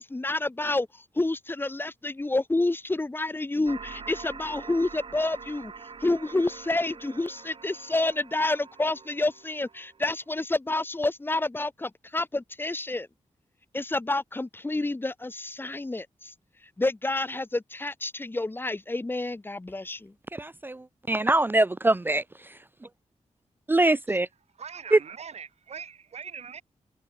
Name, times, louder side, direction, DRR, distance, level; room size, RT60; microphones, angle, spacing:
voice 1, 0.0-5.7 6.0-13.1 13.7-16.3 16.6-20.1, left 2 dB, 20° left, 1.5 m, -29 dB
sound 1, 3.7-10.2, right 5 dB, 45° right, 1.0 m, -45 dB
voice 2, 20.3-22.6 23.7-24.3 24.9-25.0, right 2 dB, 15° right, 0.4 m, -23 dB
voice 3, 24.6-26.6, right 7 dB, 65° right, 1.4 m, -41 dB
wide cardioid pair, 155°, 12 cm